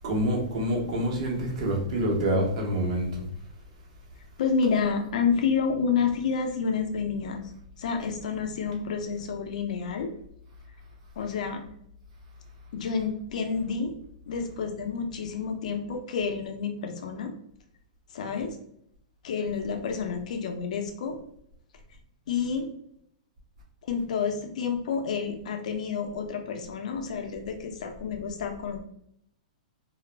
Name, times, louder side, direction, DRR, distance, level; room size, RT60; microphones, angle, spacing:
voice 1, 0.0-3.2, equal, 55° right, -2 dB, 1.0 m, -27 dB
voice 2, 4.4-7.4 7.8-10.1 11.2-11.6 12.7-13.9 14.3-17.3 18.1-18.6 19.2-21.2 22.3-22.7 23.8-28.8, left 5 dB, 65° left, 4 dB, 0.5 m, -29 dB
2.3 x 2.0 x 3.2 m, 0.71 s
hypercardioid pair, 160°, 4 cm